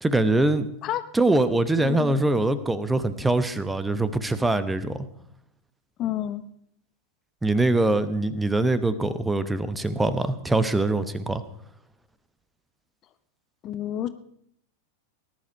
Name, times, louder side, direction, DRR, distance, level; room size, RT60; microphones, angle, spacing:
voice 1, 0.0-0.7 1.1-5.1 7.4-11.4, right 2 dB, 10° right, 13 dB, 1.0 m, -23 dB
voice 2, 1.8-2.3 6.0-6.4 13.6-14.1, left 12 dB, 35° left, 13 dB, 0.9 m, -29 dB
19.0 x 11.0 x 5.3 m, 0.70 s
figure-of-eight pair, 90°, 0 cm